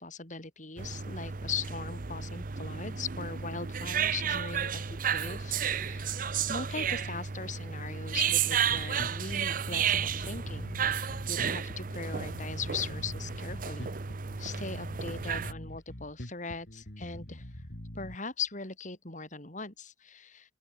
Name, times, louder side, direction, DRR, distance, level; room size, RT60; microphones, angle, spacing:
voice 1, 0.0-6.2 6.5-13.9 14.4-17.5 17.9-20.5, left 5 dB, 45° left, 4.7 m, -40 dB
sound 1, 0.8-15.5, right 7 dB, 50° right, 0.8 m, -32 dB
Bass guitar, 8.7-18.2, left 1 dB, 65° left, 3.3 m, -44 dB
open air
head